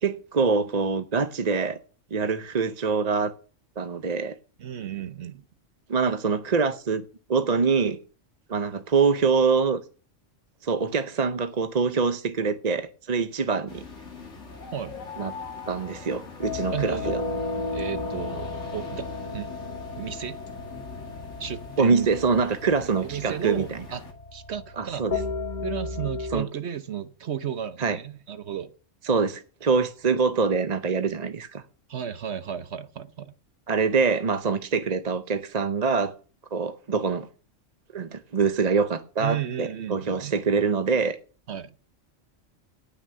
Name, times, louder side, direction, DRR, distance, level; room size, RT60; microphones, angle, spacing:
voice 1, 0.0-1.8 2.1-3.3 3.8-4.4 5.9-7.0 7.3-8.0 8.5-9.8 10.6-13.8 15.2-15.3 15.7-17.2 21.8-23.8 24.8-25.1 26.3-26.5 27.8-28.0 29.0-31.6 33.7-36.1 36.5-37.3 37.9-41.2, right 5 dB, 40° right, 0.8 m, -24 dB
voice 2, 4.6-5.4 14.7-14.9 16.7-17.1 17.7-19.1 19.3-19.5 20.0-20.4 21.4-22.1 23.0-24.0 24.3-25.1 25.6-28.7 31.9-33.3 39.2-40.4 41.5-41.7, right 9 dB, 60° right, 1.1 m, -33 dB
sound 1, 13.7-24.1, left 3 dB, 65° left, 2.4 m, -43 dB
sound 2, 14.2-17.1, left 6 dB, 90° left, 1.8 m, -42 dB
sound 3, 16.4-26.4, left 3 dB, 40° left, 2.0 m, -34 dB
18.0 x 6.2 x 6.8 m
omnidirectional pair, 1.3 m